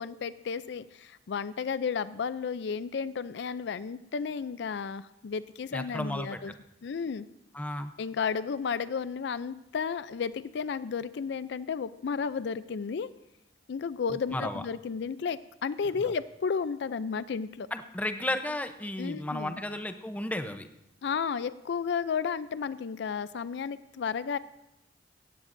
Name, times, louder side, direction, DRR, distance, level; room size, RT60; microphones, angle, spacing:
voice 1, 0.0-6.5 6.8-7.3 8.0-13.1 13.7-17.7 19.0-19.6 21.0-24.4, left 6 dB, 70° left, 15 dB, 0.4 m, -33 dB
voice 2, 5.7-6.4 7.5-7.9 14.3-14.6 17.7-20.7, left 1 dB, 10° left, 8 dB, 0.7 m, -33 dB
18.0 x 14.5 x 2.6 m, 0.87 s
head